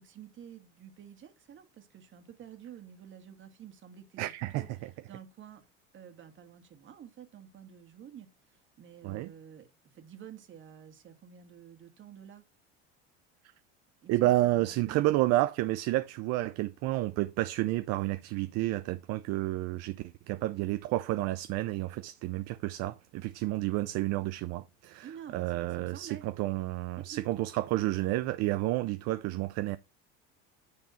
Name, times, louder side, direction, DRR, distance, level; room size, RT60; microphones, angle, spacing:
voice 1, 0.0-5.6 5.9-12.4 14.0-15.1 25.0-26.2 27.0-27.3, right 9 dB, 40° right, 1.8 m, -50 dB
voice 2, 4.2-4.6 9.0-9.3 14.1-25.1 25.3-29.8, right 17 dB, 55° right, 0.6 m, -30 dB
9.6 x 3.5 x 5.7 m
supercardioid pair, 105°, 30 cm